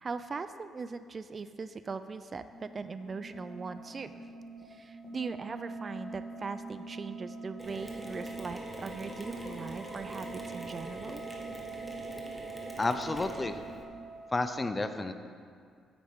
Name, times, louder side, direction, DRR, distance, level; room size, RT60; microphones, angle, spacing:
voice 1, 0.0-4.1 4.7-11.2, right 4 dB, 35° right, 11 dB, 0.4 m, -40 dB
sound 1, 2.5-14.5, right 3 dB, 50° left, 2.6 m, -44 dB
Mechanisms, 7.6-13.8, equal, 5° right, 1.4 m, -44 dB
voice 2, 12.8-13.6 14.3-15.1, left 2 dB, 25° left, 9 dB, 0.6 m, -31 dB
9.4 x 8.7 x 3.7 m, 2.1 s
cardioid pair, 90°, 0 cm